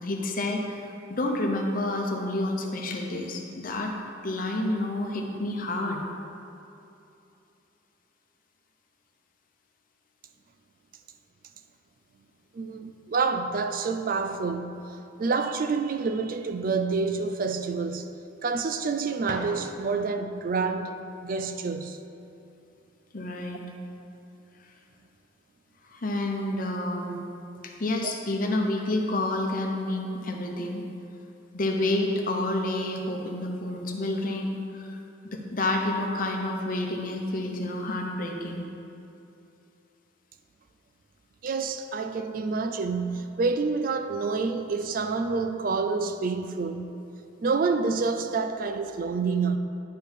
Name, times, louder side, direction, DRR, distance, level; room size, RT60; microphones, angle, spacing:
voice 1, 0.0-4.0 4.2-6.0 23.1-23.6 25.9-27.2 27.6-30.8 31.5-38.7, left 1 dB, 45° left, 0.9 m, -29 dB
voice 2, 12.5-18.1 18.4-22.0 23.9-24.0 41.4-47.0 47.4-49.6, right 4 dB, 45° right, 0.4 m, -28 dB
sound 1, 19.2-20.2, right 1 dB, 65° right, 1.0 m, -40 dB
10.5 x 4.6 x 5.2 m
head